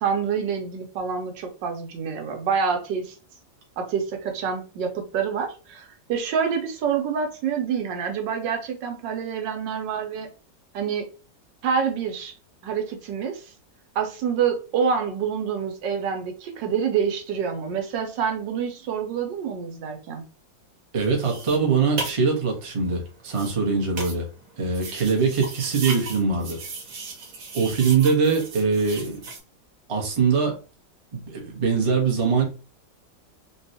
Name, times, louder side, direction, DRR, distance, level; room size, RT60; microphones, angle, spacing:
voice 1, 0.0-3.1 3.8-10.3 10.7-11.0 11.6-12.3 12.6-13.4 13.9-20.2, right 6 dB, 75° right, 5 dB, 1.4 m, -27 dB
voice 2, 20.9-24.3 24.6-26.6 27.5-29.2 29.9-30.6 31.1-32.5, right 5 dB, 35° right, 1 dB, 0.5 m, -22 dB
sound 1, 21.0-29.4, right 3 dB, 60° right, 1.4 m, -37 dB
4.1 x 2.3 x 2.6 m, 0.34 s
omnidirectional pair, 2.0 m